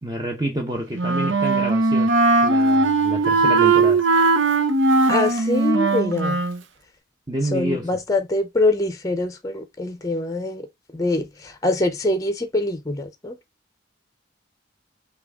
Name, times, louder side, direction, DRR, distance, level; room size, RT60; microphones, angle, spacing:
voice 1, 0.0-2.1 2.4-4.0 7.3-7.9, right 1 dB, 20° right, 0.8 m, -28 dB
Wind instrument woodwind instrument, 0.9-6.6, right 3 dB, 80° right, 0.8 m, -19 dB
voice 2, 5.1-6.4 7.5-10.6 10.9-13.4, left 2 dB, 15° left, 0.6 m, -24 dB
5.9 x 2.4 x 3.5 m
head